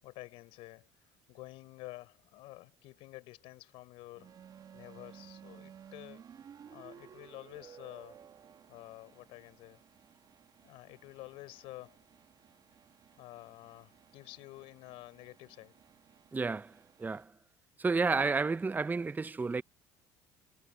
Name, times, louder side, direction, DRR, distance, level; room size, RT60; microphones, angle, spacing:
voice 1, 0.0-0.9 1.3-4.4 4.7-6.2 6.7-8.2 8.7-9.8 10.6-12.0 13.2-15.7, left 19 dB, 70° left, 4.9 m, -50 dB
sound 1, 4.1-17.2, right 8 dB, 45° right, 2.1 m, -56 dB
voice 2, 16.3-16.7 17.0-17.3 17.8-19.6, right 4 dB, 20° right, 0.7 m, -31 dB
supercardioid pair, 80°, 10 cm